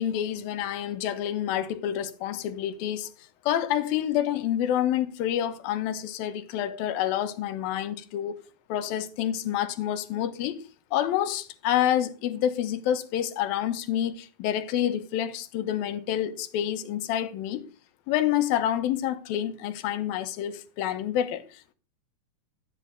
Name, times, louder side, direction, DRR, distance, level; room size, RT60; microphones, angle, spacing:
voice 1, 0.0-3.1 3.4-8.4 8.7-10.6 10.9-17.6 18.1-21.7, left 11 dB, 75° left, 2.8 m, -28 dB
14.0 x 10.0 x 5.1 m
omnidirectional pair, 4.3 m